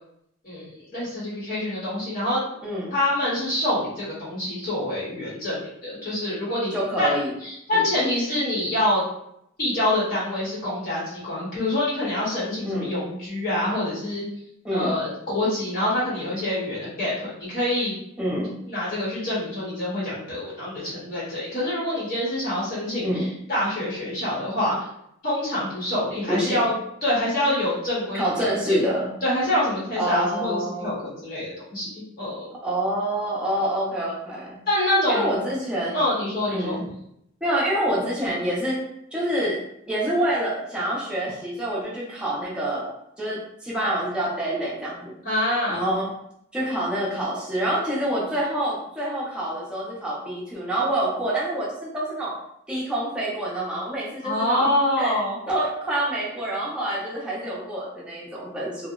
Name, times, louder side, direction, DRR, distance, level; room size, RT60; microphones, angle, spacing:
voice 1, 0.4-2.5 2.9-6.7 7.0-7.1 7.4-9.0 9.6-14.2 14.7-18.0 18.7-24.8 25.2-26.7 27.0-28.8 29.2-32.5 34.7-35.3 35.9-36.8 45.2-45.8 54.2-55.4, left 1 dB, 45° left, -8 dB, 0.8 m, -26 dB
voice 2, 2.6-2.9 6.7-7.3 7.7-7.8 12.6-12.9 14.6-14.9 18.2-18.6 23.0-23.3 26.3-26.7 28.1-29.1 30.0-31.0 32.6-34.6 35.1-36.0 36.5-36.9 37.4-38.8 39.1-39.6 39.9-42.9 43.2-45.1 45.7-46.1 46.5-52.4 52.7-54.7 55.0-55.2 55.5-58.9, right 1 dB, 5° right, -7 dB, 0.6 m, -27 dB
2.7 x 2.0 x 2.3 m, 0.75 s
head